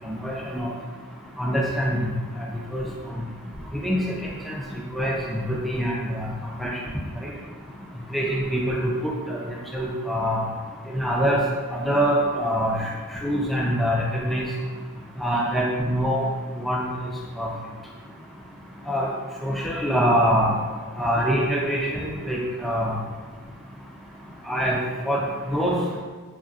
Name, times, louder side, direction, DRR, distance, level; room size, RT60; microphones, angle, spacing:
voice 1, 0.1-0.7 1.4-2.1 2.7-2.9 3.8-4.0 4.5-4.6 4.9-6.3 6.6-6.7 7.2-7.3 8.1-9.4 9.7-10.4 10.9-11.4 11.7-12.7 13.2-14.5 15.2-16.2 16.6-16.9 17.4-17.5 18.9-19.1 19.4-20.5 21.0-22.9 24.5-24.8 25.1-25.2 25.5-25.8, equal, ahead, -3 dB, 0.3 m, -24 dB
3.1 x 2.4 x 2.5 m, 1.5 s
head